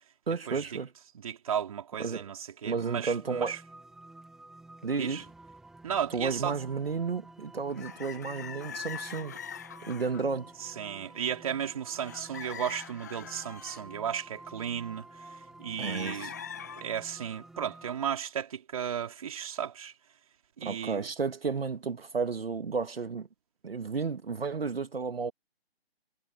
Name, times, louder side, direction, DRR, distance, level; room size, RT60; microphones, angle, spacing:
voice 1, 0.3-0.9 2.0-2.3 2.6-3.6 4.8-5.3 6.1-9.4 9.8-10.5 15.8-16.3 20.6-23.3 23.6-25.3, right 5 dB, 65° right, 2.0 m, -32 dB
voice 2, 1.2-3.6 5.0-5.2 5.8-6.6 10.6-19.9 20.6-21.1, right 8 dB, 35° right, 3.9 m, -35 dB
sound 1, 3.1-18.0, right 2 dB, ahead, 2.1 m, -51 dB
sound 2, 7.7-10.3 10.7-11.1 11.5-11.7 12.0-13.8 15.8-16.8, left 8 dB, 15° left, 0.9 m, -43 dB
figure-of-eight pair, 165°, 32 cm